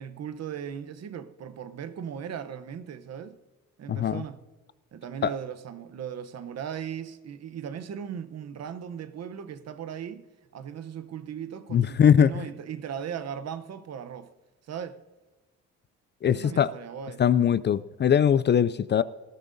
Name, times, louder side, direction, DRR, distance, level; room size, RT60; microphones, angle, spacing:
voice 1, 0.0-3.4 3.8-4.4 4.9-10.3 10.5-14.3 14.7-15.0 16.2-17.2, right 8 dB, 60° right, 0.9 m, -38 dB
voice 2, 3.9-4.2 5.2-5.3 11.7-12.3 16.2-16.7 17.2-19.0, left 8 dB, 35° left, 0.4 m, -21 dB
19.5 x 13.0 x 2.7 m
cardioid pair, 90°, 30 cm